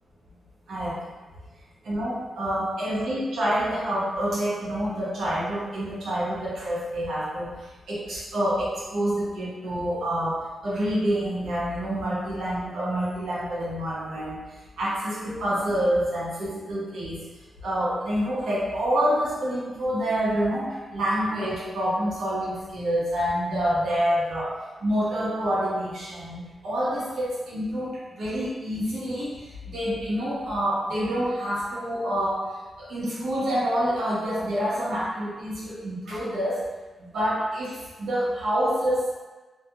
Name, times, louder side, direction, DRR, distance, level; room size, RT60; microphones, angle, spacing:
voice 1, 0.7-1.0 1.8-7.5 7.9-14.4 14.8-17.2 17.6-24.5 24.8-32.4 32.8-36.6 37.0-39.1, equal, 80° right, -8 dB, 0.9 m, -27 dB
2.5 x 2.2 x 2.8 m, 1.2 s
cardioid pair, 80°, 0 cm